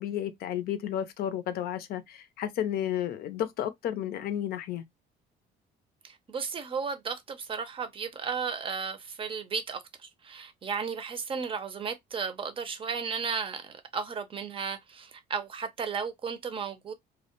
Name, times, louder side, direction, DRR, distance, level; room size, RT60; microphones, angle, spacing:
voice 1, 0.0-4.8, left 10 dB, 65° left, 0.5 m, -32 dB
voice 2, 6.0-9.8 10.2-16.9, right 6 dB, 30° right, 0.6 m, -34 dB
2.2 x 2.1 x 2.8 m
cardioid pair, 110°, 17 cm